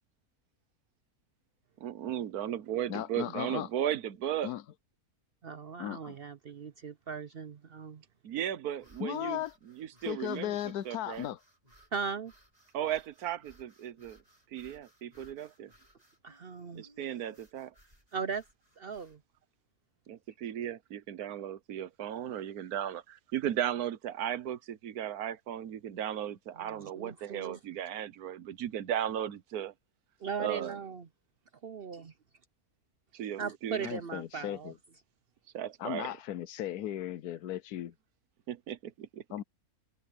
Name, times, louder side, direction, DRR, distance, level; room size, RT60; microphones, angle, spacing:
voice 1, 1.8-4.5 8.2-9.4 9.7-10.6 10.8-11.3 12.7-14.2 14.5-15.7 16.7-17.7 20.1-29.7 30.4-30.8 33.1-33.9 35.5-36.1 38.5-39.2, right 10 dB, 80° right, 1.4 m, -36 dB
voice 2, 2.9-3.7 4.4-4.6 5.8-6.2 9.0-9.5 10.1-11.4 33.8-34.8 35.8-37.9 39.3-39.4, left 12 dB, 90° left, 1.2 m, -36 dB
voice 3, 5.4-8.0 11.9-12.3 16.2-16.8 18.1-18.4 18.8-19.2 26.6-27.6 30.2-31.1 31.6-32.1 33.4-34.7, right 6 dB, 55° right, 0.7 m, -38 dB
sound 1, 8.8-19.2, right 1 dB, 25° right, 7.1 m, -63 dB
omnidirectional pair, 1.6 m